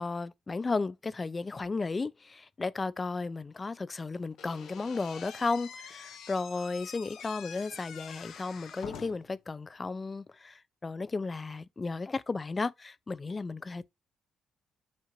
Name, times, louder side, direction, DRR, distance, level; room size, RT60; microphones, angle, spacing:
voice 1, 0.0-13.9, left 3 dB, 30° left, 0.3 m, -34 dB
Slam / Squeak, 4.4-9.4, left 7 dB, 75° left, 0.8 m, -46 dB
7.2 x 2.5 x 3.0 m
cardioid pair, 90°, 0 cm